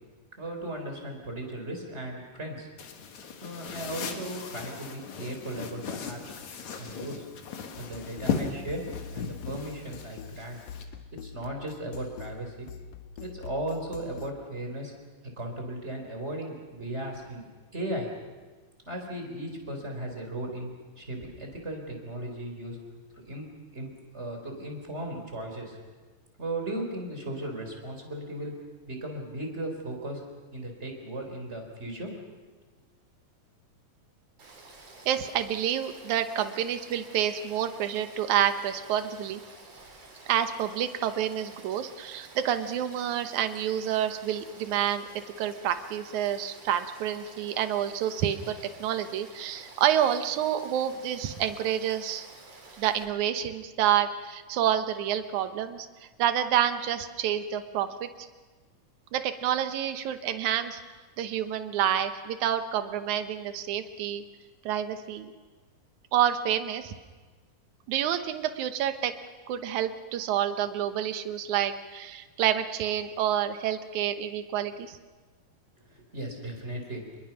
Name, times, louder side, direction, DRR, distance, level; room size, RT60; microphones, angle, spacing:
voice 1, 0.4-2.7 3.4-6.4 6.7-7.3 7.8-10.6 11.1-12.7 13.2-14.9 15.4-17.4 17.7-18.1 18.9-20.7 21.0-22.8 23.1-25.8 26.4-28.6 28.9-30.2 30.5-32.1 75.9-77.0, right 1 dB, 20° right, 2 dB, 4.0 m, -36 dB
sound 1, 2.8-10.8, left 6 dB, 60° left, 2.8 m, -37 dB
sound 2, 7.7-14.3, left 6 dB, 80° left, 1.5 m, -44 dB
Frog / Stream, 34.4-53.0, right 3 dB, 50° right, 4.6 m, -50 dB
voice 2, 35.1-39.4 40.3-45.1 45.4-52.3 52.8-55.9 56.2-58.3 59.1-60.8 61.2-64.2 64.6-65.3 66.1-66.9 67.9-69.1 69.5-75.0, right 10 dB, 70° right, 8 dB, 2.3 m, -28 dB
27.5 x 21.5 x 5.8 m, 1.3 s
omnidirectional pair, 3.9 m